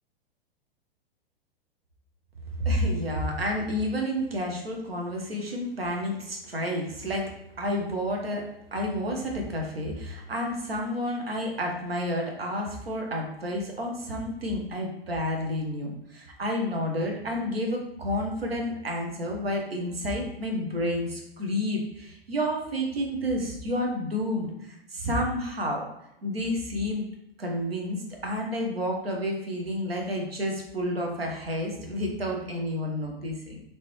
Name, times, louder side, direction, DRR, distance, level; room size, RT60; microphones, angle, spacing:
voice 1, 2.6-25.9 26.2-27.1 27.4-33.6, equal, 80° right, 0 dB, 0.9 m, -30 dB
3.7 x 2.7 x 3.1 m, 0.82 s
figure-of-eight pair, 100°, 30 cm